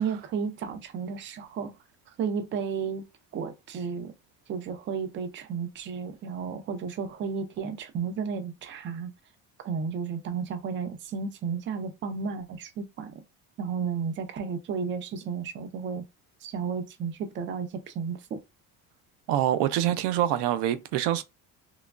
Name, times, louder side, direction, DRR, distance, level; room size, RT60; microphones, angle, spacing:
voice 1, 0.0-1.8 2.2-3.0 3.3-4.1 4.5-9.1 9.6-13.2 13.6-16.0 16.4-18.4, right 6 dB, 30° right, 0.4 m, -33 dB
voice 2, 19.3-21.2, right 12 dB, 85° right, 0.5 m, -25 dB
3.0 x 2.2 x 2.3 m
cardioid pair, 140°, 39 cm